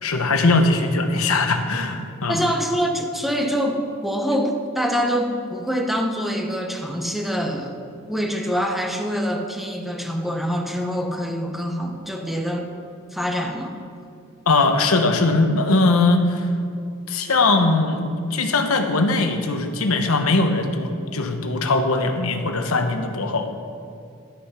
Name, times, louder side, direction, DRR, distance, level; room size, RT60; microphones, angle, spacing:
voice 1, 0.0-2.4 14.5-16.5 17.1-23.5, left 3 dB, 80° left, 6 dB, 1.0 m, -20 dB
voice 2, 2.3-7.8 8.1-12.7 13.1-13.8, equal, ahead, 2 dB, 1.0 m, -25 dB
11.5 x 8.8 x 5.8 m, 2.5 s
head